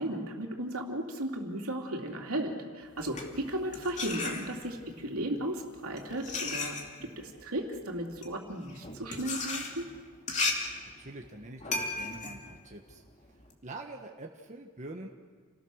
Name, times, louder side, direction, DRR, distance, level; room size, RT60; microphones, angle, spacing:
voice 1, 0.0-9.9, right 1 dB, 70° right, 1 dB, 3.2 m, -35 dB
sound 1, 2.9-4.9 5.6-13.5, left 3 dB, 35° left, 2.8 m, -36 dB
voice 2, 11.0-13.0 13.6-15.1, right 2 dB, 35° right, 1 dB, 1.4 m, -45 dB
29.5 x 18.5 x 6.5 m, 1.5 s
head